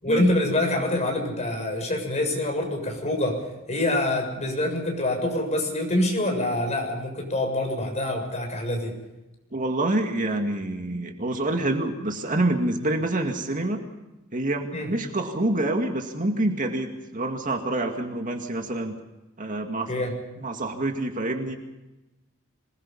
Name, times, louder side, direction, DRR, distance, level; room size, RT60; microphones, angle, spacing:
voice 1, 0.0-8.9 14.7-14.9 19.9-20.1, left 1 dB, 35° left, 2 dB, 7.1 m, -26 dB
voice 2, 9.5-13.8 14.3-19.0 19.4-19.9 20.4-21.6, right 2 dB, 40° right, 4 dB, 2.3 m, -27 dB
26.5 x 20.5 x 5.6 m, 1.0 s
head